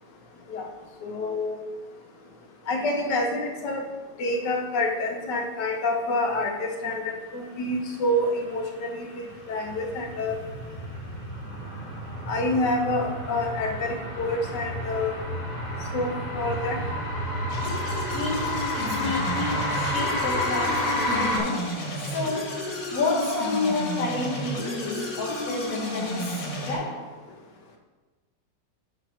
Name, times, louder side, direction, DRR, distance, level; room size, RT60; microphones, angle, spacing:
voice 1, 1.0-1.6 2.7-3.8 4.2-10.4 12.3-15.1 15.9-16.8, left 1 dB, 70° left, 2 dB, 1.7 m, -27 dB
sound 1, 8.6-21.4, left 1 dB, 30° left, 1.8 m, -30 dB
sound 2, 17.5-26.7, left 1 dB, 85° left, 2.4 m, -32 dB
voice 2, 18.1-27.1, left 2 dB, 55° left, -5 dB, 1.4 m, -30 dB
9.5 x 3.9 x 5.6 m, 1.3 s
omnidirectional pair, 1.9 m